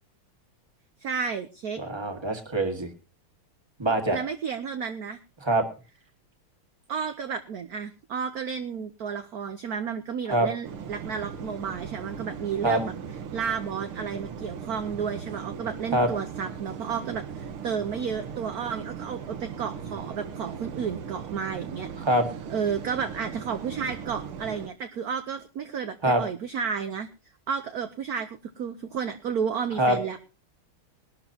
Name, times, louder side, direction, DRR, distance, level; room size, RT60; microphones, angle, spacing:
voice 1, 1.0-1.8 4.1-5.2 6.9-12.9 13.3-21.9 22.5-27.1 27.5-30.2, right 6 dB, 60° right, 7 dB, 1.1 m, -32 dB
voice 2, 1.8-2.9 3.8-4.2 5.4-5.6 10.3-10.5 12.6-12.8 15.9-16.1 22.0-22.2 26.0-26.2 29.8-30.0, right 1 dB, 15° right, 5 dB, 1.7 m, -23 dB
sound 1, 10.6-24.7, right 7 dB, 85° right, 2.0 m, -38 dB
21.0 x 12.0 x 2.9 m, 0.32 s
omnidirectional pair, 2.3 m